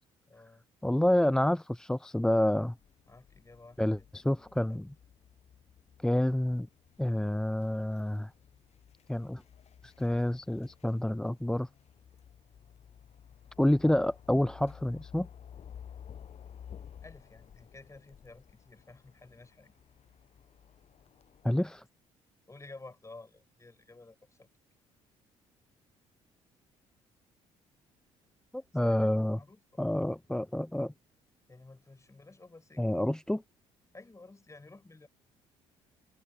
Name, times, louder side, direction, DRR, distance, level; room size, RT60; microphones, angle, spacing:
voice 1, 0.3-0.6 3.1-4.8 17.0-19.7 22.5-24.5 28.7-29.8 31.5-33.1 33.9-35.1, left 3 dB, 20° left, 5.6 m, -53 dB
voice 2, 0.8-2.8 3.8-4.9 6.0-6.7 7.0-8.3 9.1-9.4 9.8-11.7 13.6-15.3 21.4-21.8 28.5-29.4 29.8-30.9 32.8-33.4, left 1 dB, 5° left, 0.6 m, -28 dB
sound 1, 2.8-21.5, left 8 dB, 45° left, 1.1 m, -54 dB
figure-of-eight pair, 50°, 16 cm